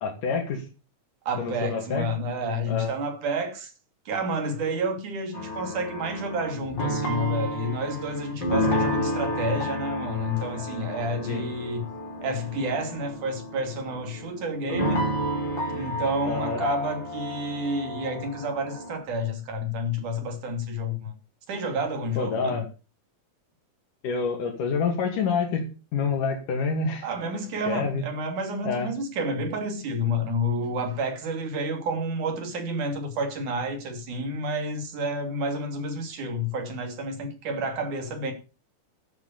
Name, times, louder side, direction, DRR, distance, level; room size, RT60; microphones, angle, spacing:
voice 1, 0.0-0.6 1.4-2.1 2.7-2.9 11.3-11.4 16.2-16.6 22.2-22.6 24.0-25.7 25.9-27.1 27.7-28.0 28.6-28.9, left 5 dB, 85° left, 3.9 m, -27 dB
voice 2, 1.3-3.7 4.1-11.8 12.2-15.1 15.7-21.1 21.5-22.6 27.0-38.3, equal, 75° right, 4.3 m, -30 dB
sound 1, 5.3-19.0, equal, 35° left, 4.2 m, -31 dB
12.0 x 7.8 x 6.8 m
omnidirectional pair, 3.6 m